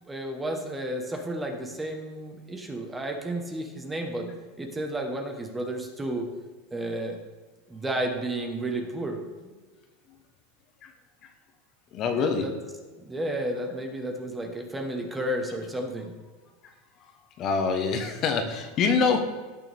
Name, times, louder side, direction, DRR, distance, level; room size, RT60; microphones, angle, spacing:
voice 1, 0.0-4.3 4.6-6.3 6.7-7.2 7.7-9.5 12.1-12.5 13.0-16.1, right 1 dB, 10° right, 3 dB, 1.2 m, -32 dB
voice 2, 11.9-12.4 17.4-19.2, left 5 dB, 35° left, 6 dB, 1.2 m, -25 dB
17.5 x 6.8 x 3.5 m, 1.4 s
supercardioid pair, 165°, 0 cm